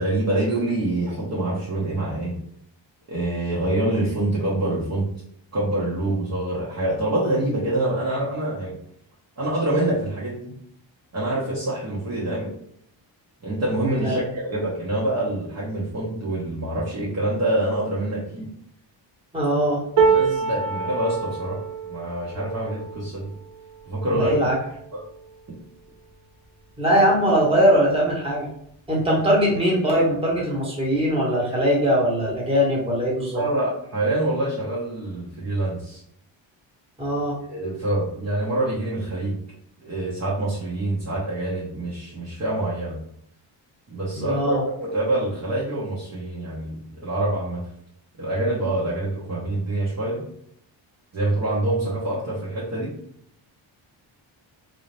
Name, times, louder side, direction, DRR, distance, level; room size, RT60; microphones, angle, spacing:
voice 1, 0.0-2.4 3.1-5.1 5.5-8.7 9.4-10.5 11.1-12.5 13.4-18.5 20.1-21.6 21.9-23.3 23.9-24.3 24.9-25.0 33.3-36.0 37.5-39.4 39.8-43.0 43.9-47.6 48.2-50.2 51.1-52.9, right 1 dB, 35° right, -8 dB, 1.1 m, -26 dB
voice 2, 13.8-14.2 19.3-19.8 24.1-24.6 26.8-28.5 28.9-33.4 37.0-37.4 44.1-44.6, equal, 10° right, -4 dB, 1.4 m, -21 dB
sound 1, 20.0-26.1 26.7-26.9 27.2-28.0 28.9-29.0, right 5 dB, 60° right, 1.0 m, -27 dB
4.0 x 2.7 x 3.3 m, 0.70 s
wide cardioid pair, 155°, 46 cm